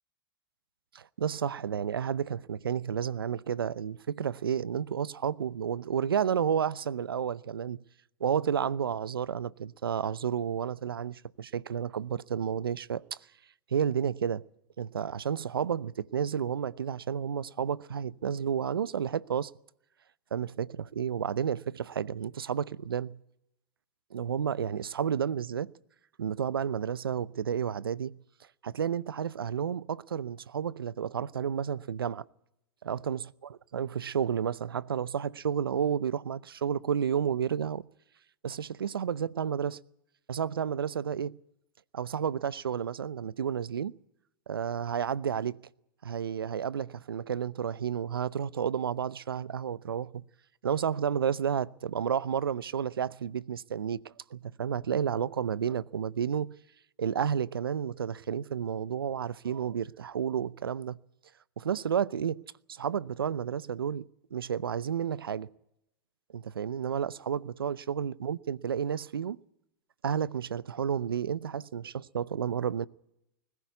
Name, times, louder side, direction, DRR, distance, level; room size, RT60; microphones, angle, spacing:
voice 1, 0.9-7.8 8.2-13.0 13.7-14.4 14.8-19.5 20.3-23.2 24.1-25.7 26.2-28.2 28.6-32.2 32.8-33.2 33.7-37.9 38.4-39.8 40.3-41.4 41.9-43.9 44.5-45.6 46.0-50.2 50.6-56.5 57.0-61.0 61.6-62.4 62.7-65.5 66.3-69.4 70.0-72.9, right 8 dB, 85° right, 0.7 m, -31 dB
21.0 x 15.0 x 9.4 m
hypercardioid pair, 110°, 12 cm